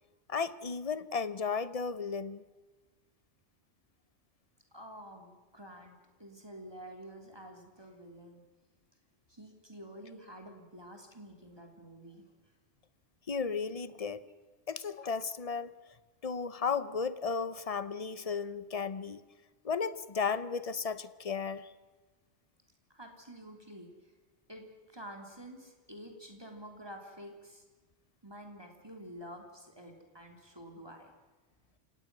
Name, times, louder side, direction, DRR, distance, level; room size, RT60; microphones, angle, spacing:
voice 1, 0.3-2.4 13.3-14.2 14.7-15.7 16.2-19.2 19.6-21.7, left 5 dB, 35° left, 15 dB, 0.8 m, -34 dB
voice 2, 4.7-8.4 9.3-12.3 22.9-24.1 24.5-27.6 28.2-31.1, equal, 20° right, 2 dB, 3.1 m, -49 dB
29.0 x 17.5 x 6.1 m, 1.3 s
omnidirectional pair, 1.2 m